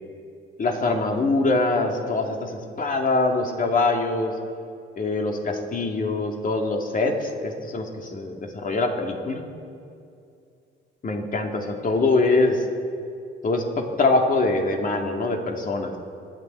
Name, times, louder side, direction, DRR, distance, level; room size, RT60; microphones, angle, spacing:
voice 1, 0.6-4.3 5.0-9.4 11.0-12.6 13.4-16.0, left 3 dB, 45° left, 2 dB, 2.4 m, -23 dB
25.5 x 9.6 x 4.5 m, 2.4 s
cardioid pair, 90°, 20 cm